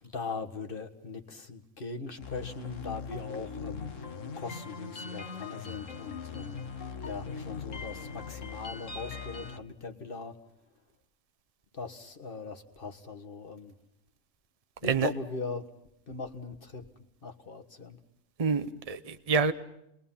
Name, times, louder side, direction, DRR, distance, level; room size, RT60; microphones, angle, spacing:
voice 1, 0.0-6.7 7.0-10.4 11.7-13.8 14.8-15.7 16.1-16.9 17.2-18.0, left 4 dB, 45° left, 5 dB, 1.7 m, -40 dB
sound 1, 2.2-9.6, left 5 dB, 75° left, 1.5 m, -40 dB
voice 2, 18.4-19.5, right 5 dB, 30° right, 10 dB, 0.9 m, -27 dB
28.5 x 22.0 x 5.7 m, 0.77 s
omnidirectional pair, 1.3 m